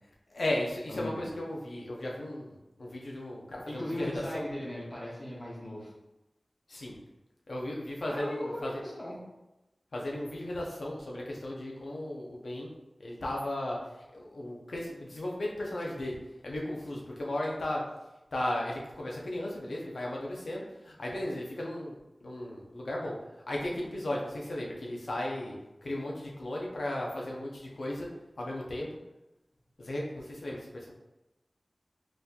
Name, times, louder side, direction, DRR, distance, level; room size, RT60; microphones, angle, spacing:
voice 1, 0.3-4.5 6.7-7.0 7.5-8.7 9.9-12.7 13.0-13.8 14.1-16.2 16.4-17.8 18.3-22.0 22.2-23.2 23.5-25.5 25.8-28.1 28.4-28.9 29.8-30.9, left 1 dB, 90° left, -2 dB, 0.6 m, -35 dB
voice 2, 0.9-1.2 3.7-5.9 8.1-9.2, left 1 dB, 45° left, -5 dB, 0.8 m, -38 dB
4.0 x 2.7 x 2.4 m, 0.98 s
wide cardioid pair, 60°, 0 cm